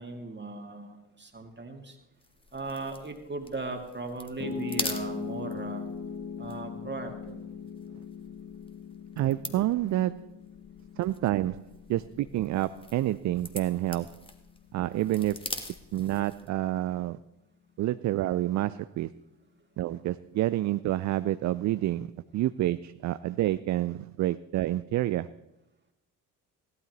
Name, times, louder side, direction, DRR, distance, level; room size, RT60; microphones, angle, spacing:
voice 1, 0.0-2.0 2.5-5.9 6.4-7.5, right 3 dB, 25° right, 3 dB, 2.2 m, -38 dB
sound 1, 2.2-16.6, left 2 dB, 10° left, 1.5 m, -43 dB
Piano, 4.4-16.6, left 5 dB, 35° left, 1.4 m, -41 dB
voice 2, 9.2-10.3 11.0-11.6 11.9-14.2 14.7-15.5 15.9-17.2 17.8-19.1 19.8-25.3, right 14 dB, 40° right, 15 dB, 0.4 m, -28 dB
17.0 x 12.5 x 3.0 m, 0.93 s
figure-of-eight pair, 40°, 46 cm